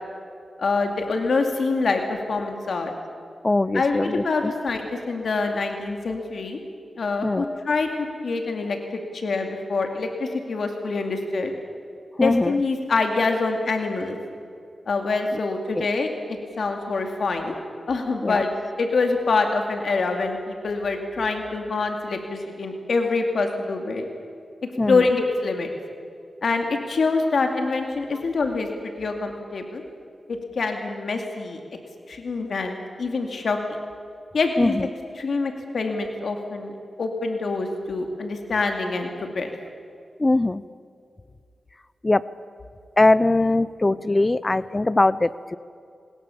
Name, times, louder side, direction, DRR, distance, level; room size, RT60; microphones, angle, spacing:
voice 1, 0.6-2.9 3.7-6.6 7.0-11.5 12.2-14.2 14.9-17.6 17.9-18.5 18.8-24.1 24.9-25.7 26.4-28.7 29.0-29.8 30.3-31.6 32.1-33.6 34.3-34.8 35.2-39.5, left 3 dB, 75° left, 4 dB, 2.3 m, -25 dB
voice 2, 3.4-4.5 7.2-7.6 12.2-12.5 15.8-15.9 18.2-18.4 24.8-25.0 34.6-34.9 40.2-40.6 42.0-42.2 43.0-45.6, left 2 dB, 25° left, 17 dB, 0.5 m, -21 dB
25.0 x 20.5 x 7.1 m, 2.5 s
cardioid pair, 70°, 0 cm